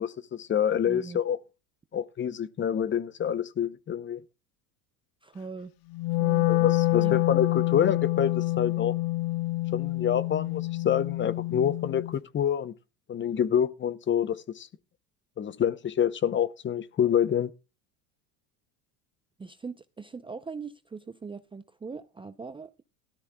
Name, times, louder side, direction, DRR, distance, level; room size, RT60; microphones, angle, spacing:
voice 1, 0.0-1.4 1.9-4.2 6.5-8.9 9.7-12.7 13.1-14.7 15.4-17.5, left 9 dB, 30° left, 0.7 m, -27 dB
voice 2, 0.9-1.2 5.2-5.7 6.1-6.5 7.0-7.2 19.4-22.8, right 4 dB, 15° right, 0.5 m, -41 dB
Wind instrument woodwind instrument, 5.9-12.1, left 18 dB, 60° left, 0.9 m, -27 dB
17.0 x 13.0 x 2.3 m
supercardioid pair, 115°, 41 cm